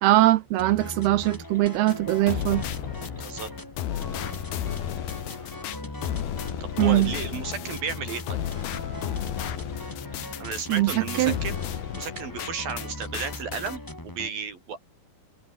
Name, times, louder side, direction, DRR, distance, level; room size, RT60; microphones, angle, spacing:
voice 1, 0.0-2.7 6.8-7.1 10.7-10.9 11.2-11.4, right 16 dB, 80° right, 2.3 m, -21 dB
sound 1, 0.6-14.3, left 1 dB, 5° left, 1.7 m, -39 dB
sound 2, 1.9-12.9 13.1-13.8, left 11 dB, 60° left, 3.5 m, -33 dB
voice 2, 3.2-3.5 6.6-8.4 10.4-14.8, right 6 dB, 50° right, 6.4 m, -34 dB
omnidirectional pair, 5.5 m